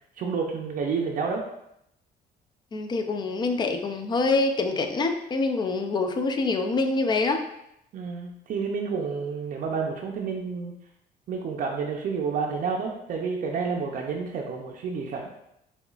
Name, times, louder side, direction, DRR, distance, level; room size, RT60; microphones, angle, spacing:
voice 1, 0.2-1.4 7.9-10.7 11.3-15.3, right 5 dB, 55° right, 0 dB, 0.6 m, -30 dB
voice 2, 2.7-7.4, left 3 dB, 25° left, 6 dB, 0.4 m, -25 dB
6.9 x 2.3 x 2.4 m, 0.80 s
cardioid pair, 110°, 17 cm